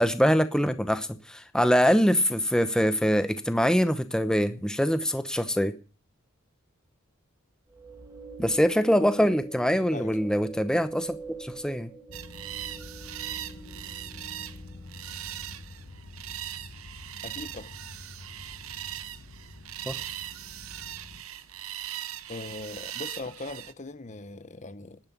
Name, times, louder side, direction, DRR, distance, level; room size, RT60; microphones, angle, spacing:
voice 1, 0.0-5.7 8.4-11.1 11.4-11.9 19.9-20.0, equal, 5° left, 0.8 m, -24 dB
sound 1, 7.7-15.0, right 3 dB, 15° right, 1.9 m, -44 dB
sound 2, 12.1-21.2, left 2 dB, 70° left, 1.3 m, -47 dB
sound 3, 12.1-23.7, right 12 dB, 80° right, 0.9 m, -40 dB
voice 2, 17.2-17.7 22.3-25.0, left 2 dB, 35° left, 0.8 m, -40 dB
11.0 x 9.7 x 9.7 m
head